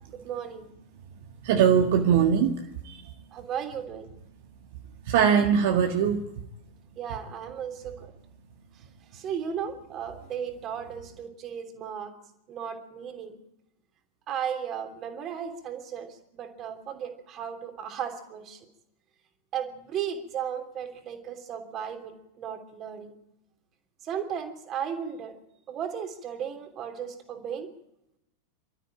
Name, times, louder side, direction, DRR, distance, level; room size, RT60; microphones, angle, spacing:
voice 1, 0.1-0.7 3.3-4.1 7.0-8.1 9.1-12.1 12.5-13.4 14.3-18.6 19.5-23.1 24.0-25.3 25.7-27.7, right 8 dB, 30° right, 6 dB, 3.1 m, -35 dB
voice 2, 1.4-2.5 2.8-3.0 5.1-6.2, right 7 dB, 50° right, 4 dB, 1.7 m, -21 dB
26.5 x 13.5 x 8.9 m, 0.87 s
figure-of-eight pair, 90°, 0 cm